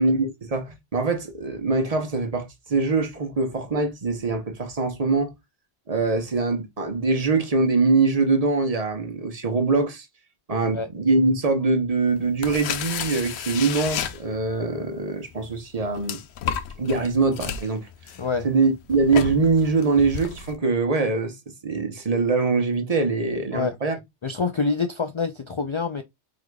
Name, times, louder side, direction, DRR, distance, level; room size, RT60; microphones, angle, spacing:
voice 1, 0.0-5.3 5.9-10.1 10.5-16.2 16.8-17.9 18.4-21.4 21.6-24.0, right 3 dB, 35° right, 1.0 m, -23 dB
sound 1, 12.2-14.7 15.3-20.6, left 8 dB, 70° left, 0.8 m, -32 dB
voice 2, 24.2-26.0, left 4 dB, 55° left, 0.3 m, -26 dB
4.8 x 3.8 x 2.2 m
omnidirectional pair, 1.1 m